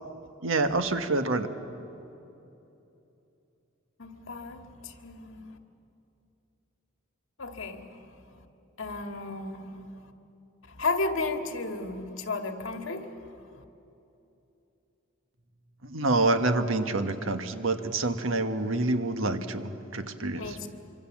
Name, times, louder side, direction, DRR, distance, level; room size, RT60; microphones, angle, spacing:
voice 1, 0.4-1.5 15.9-20.6, right 2 dB, 80° right, 1.4 m, -27 dB
voice 2, 4.0-5.6 7.4-8.0 8.8-9.9 10.7-13.6 20.4-20.7, left 3 dB, 75° left, 1.9 m, -34 dB
25.5 x 25.0 x 7.4 m
head